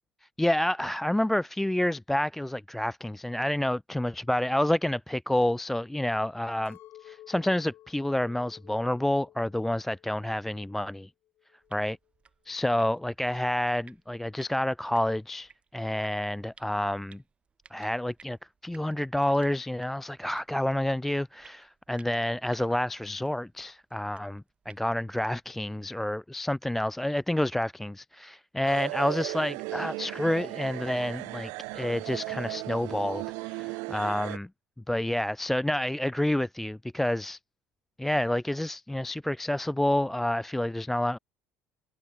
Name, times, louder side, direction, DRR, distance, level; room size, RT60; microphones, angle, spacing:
voice 1, 0.4-11.1 11.7-12.0 12.5-17.2 17.7-18.4 18.6-34.5 34.9-37.4 38.0-41.2, left 1 dB, 5° left, 0.4 m, -29 dB
Chink clink, 6.7-11.0 11.3-12.1, left 13 dB, 55° left, 5.7 m, -54 dB
sound 1, 11.6-25.5, right 5 dB, 25° right, 7.3 m, -60 dB
sound 2, 28.6-34.4, right 31 dB, 80° right, 1.8 m, -36 dB
cardioid pair, 130°, 5 cm